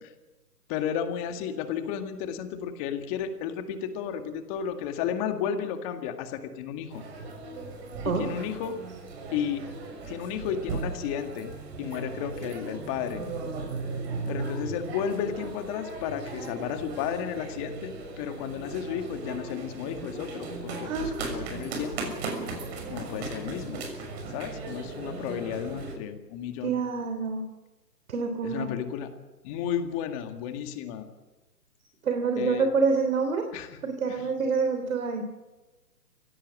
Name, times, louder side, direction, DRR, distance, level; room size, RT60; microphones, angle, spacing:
voice 1, 0.7-7.0 8.0-8.8 9.3-9.7 10.1-11.5 11.8-13.2 14.3-22.1 22.9-23.8 24.3-26.7 28.4-29.1 29.4-31.1 32.4-32.7 33.5-33.8 34.1-34.3, left 8 dB, 20° left, 7 dB, 1.9 m, -33 dB
sound 1, 6.9-25.9, right 3 dB, 40° right, 6.4 m, -37 dB
voice 2, 20.8-21.3 26.6-27.4 28.1-28.7 32.0-33.5 33.8-35.2, right 5 dB, 55° right, 6 dB, 3.3 m, -27 dB
27.0 x 17.0 x 7.6 m, 1.1 s
hypercardioid pair, 145°, 48 cm